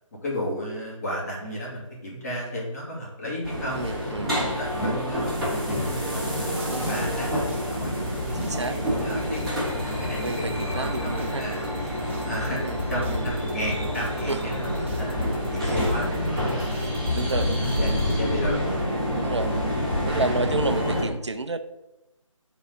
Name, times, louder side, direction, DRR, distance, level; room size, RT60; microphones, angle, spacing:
voice 1, 0.2-3.8 4.5-9.4 9.8-11.6 12.2-16.7 17.3-18.6, equal, 30° left, -5 dB, 2.6 m, -34 dB
sound 1, 3.4-21.0, equal, ahead, 1.3 m, -27 dB
voice 2, 3.8-4.6 6.7-7.0 8.3-8.8 9.1-9.3 10.2-11.5 12.6-12.8 13.1-13.2 14.3-14.4 15.6-15.8 17.1-17.6 19.1-19.6 20.1-21.6, right 2 dB, 55° right, 10 dB, 0.7 m, -30 dB
sound 2, 6.6-18.7, equal, 20° right, 0.7 m, -40 dB
7.6 x 4.2 x 5.7 m, 0.95 s
figure-of-eight pair, 155°, 17 cm